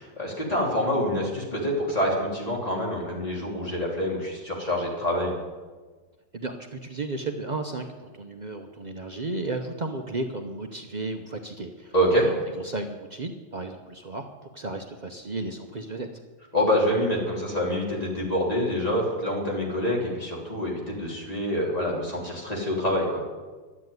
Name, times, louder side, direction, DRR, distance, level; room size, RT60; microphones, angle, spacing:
voice 1, 0.0-5.3 11.9-12.3 16.5-23.2, equal, 20° left, -3 dB, 3.3 m, -26 dB
voice 2, 6.3-11.9 12.2-14.3 14.5-16.1, right 2 dB, 80° right, 5 dB, 0.4 m, -34 dB
12.0 x 8.5 x 9.4 m, 1.4 s
omnidirectional pair, 2.0 m